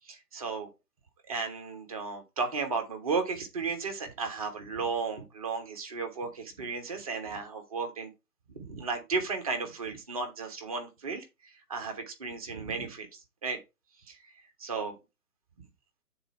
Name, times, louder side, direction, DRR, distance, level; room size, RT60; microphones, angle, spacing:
voice 1, 0.0-0.7 1.3-8.1 8.5-11.2 11.7-13.6 14.1-14.2 14.6-14.9, right 4 dB, 25° right, 1.2 m, -34 dB
7.8 x 4.3 x 4.4 m
figure-of-eight pair, 150°, 46 cm